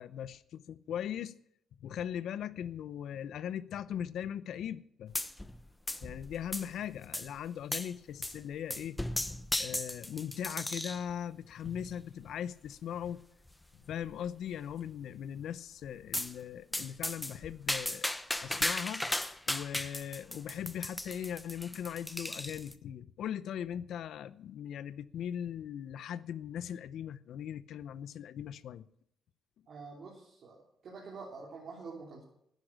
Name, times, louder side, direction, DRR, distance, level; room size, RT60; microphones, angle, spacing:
voice 1, 0.0-1.3 1.8-5.1 6.0-9.0 9.6-13.2 13.7-18.1 18.4-19.1 19.5-28.9, left 9 dB, 75° left, 0.7 m, -39 dB
Marbles Bounce, 5.1-5.6 5.9-6.8 7.1-7.3 7.7-7.9 8.2-8.4 8.7-11.0 11.6-12.0 12.6-12.7 13.1-13.2 13.5-13.6 14.0-14.5 16.1-16.3 16.7-22.7, left 1 dB, 10° left, 0.8 m, -36 dB
voice 2, 29.7-30.6 30.8-32.2, right 4 dB, 55° right, 3.6 m, -46 dB
10.5 x 9.9 x 8.8 m
cardioid pair, 90°, 0 cm